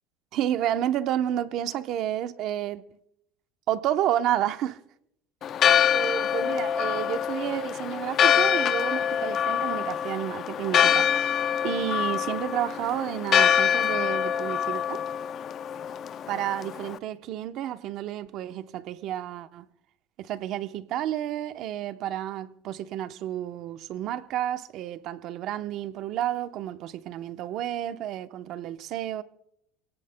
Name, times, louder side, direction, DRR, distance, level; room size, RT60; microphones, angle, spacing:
voice 1, 0.3-2.8 3.7-4.8 5.9-11.1 11.6-15.0 16.3-19.7 20.2-29.2, right 11 dB, 55° right, 0.8 m, -30 dB
Church bell, 5.4-17.0, left 9 dB, 40° left, 0.5 m, -25 dB
25.5 x 18.0 x 2.2 m
cardioid pair, 135°, 0 cm